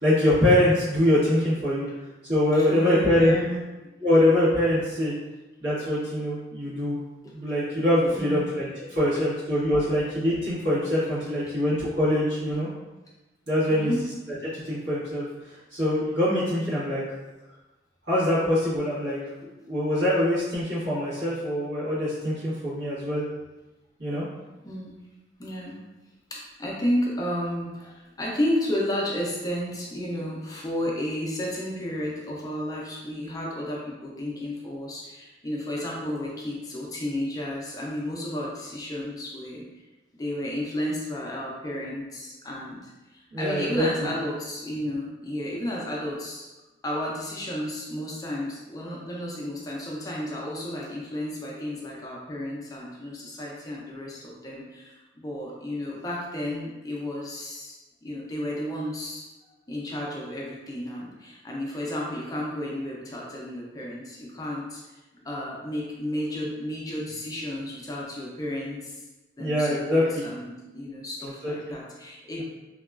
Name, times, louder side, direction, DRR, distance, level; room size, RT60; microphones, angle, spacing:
voice 1, 0.0-1.9 2.3-3.3 4.0-5.1 5.6-7.0 7.3-12.7 13.5-13.9 14.6-17.0 18.1-19.2 19.7-23.2 24.0-24.2 43.3-43.9 69.4-70.0 71.4-71.5 72.4-72.5, left 1 dB, 70° right, -10 dB, 1.4 m, -23 dB
voice 2, 2.5-3.6 8.1-8.5 13.7-14.0 24.6-25.0 25.4-25.8 26.3-39.6 40.2-46.5 46.8-59.2 59.7-64.9 65.2-69.0 69.4-72.4, left 1 dB, 20° left, -3 dB, 0.4 m, -32 dB
2.9 x 2.2 x 2.3 m, 1.1 s
head